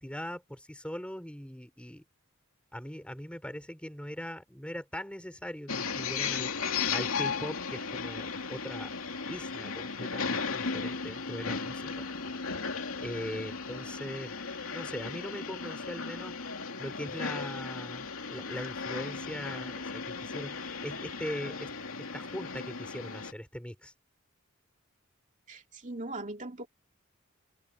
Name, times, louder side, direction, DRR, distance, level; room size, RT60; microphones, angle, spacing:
voice 1, 0.0-2.0 2.7-6.5 6.9-8.9 9.3-12.1 13.0-14.4 14.7-16.4 16.8-21.7 22.0-23.9, equal, 5° left, 4.0 m, -40 dB
sound 1, 5.7-23.3, left 5 dB, 80° left, 2.6 m, -36 dB
voice 2, 25.5-26.7, right 2 dB, 35° right, 2.5 m, -40 dB
open air
head